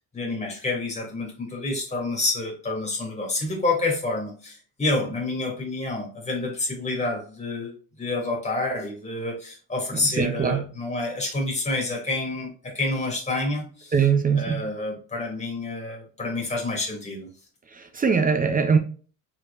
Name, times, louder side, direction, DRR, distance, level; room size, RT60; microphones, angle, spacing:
voice 1, 0.1-7.7 8.0-14.0 14.3-17.3, left 2 dB, 15° left, 2.4 m, -28 dB
voice 2, 10.2-10.6 13.9-14.6 17.8-18.8, right 6 dB, 20° right, 0.6 m, -21 dB
4.4 x 4.3 x 2.4 m
cardioid pair, 130°, 38 cm